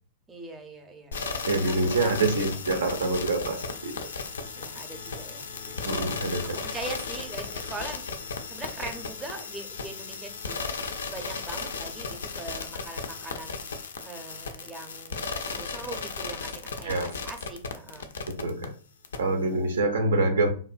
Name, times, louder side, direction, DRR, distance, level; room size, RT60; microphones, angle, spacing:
voice 1, 0.3-1.2 1.6-2.9 4.5-6.1 6.4-8.0 8.4-10.6 10.9-13.6 14.0-18.1 19.3-19.5, right 3 dB, 15° right, 5 dB, 0.5 m, -42 dB
sound 1, 1.1-18.7 19.0-19.2, left 4 dB, 75° left, 0.3 m, -35 dB
voice 2, 1.4-3.9 5.9-6.6 16.8-17.2 18.3-18.7 19.2-20.5, right 2 dB, 75° right, 6 dB, 0.4 m, -26 dB
2.5 x 2.1 x 2.4 m, 0.41 s
hypercardioid pair, 105°, 0 cm